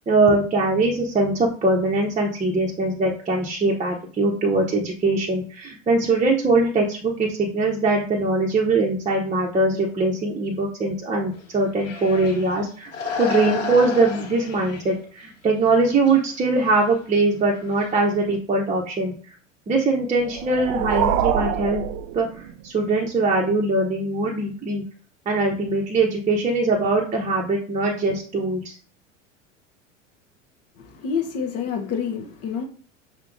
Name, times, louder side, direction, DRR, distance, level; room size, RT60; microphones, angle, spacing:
voice 1, 0.1-12.9 13.2-19.1 19.7-21.8 22.1-24.8 25.3-28.8, right 2 dB, 20° right, -2 dB, 0.8 m, -22 dB
sound 1, 11.3-12.6 12.8-14.9 15.5-15.7 16.0-16.2 16.5-18.4, left 5 dB, 80° left, 1.4 m, -32 dB
sound 2, 20.2-22.8, right 9 dB, 45° right, 0.4 m, -25 dB
voice 2, 30.8-32.6, left 6 dB, 40° left, 2 dB, 0.8 m, -28 dB
5.6 x 2.9 x 2.5 m, 0.42 s
hypercardioid pair, 85°, 38 cm